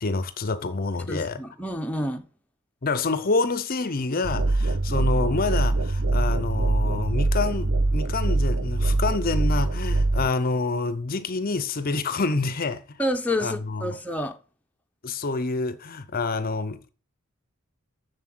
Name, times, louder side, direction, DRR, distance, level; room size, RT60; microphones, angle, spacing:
voice 1, 0.0-1.4 2.8-13.0 13.4-14.0 15.0-16.9, left 3 dB, 40° left, 0.6 m, -27 dB
voice 2, 1.1-2.2 13.0-14.4, left 1 dB, 5° left, 0.7 m, -28 dB
sound 1, 4.2-10.3, right 2 dB, 60° right, 0.8 m, -23 dB
7.5 x 6.8 x 7.7 m
head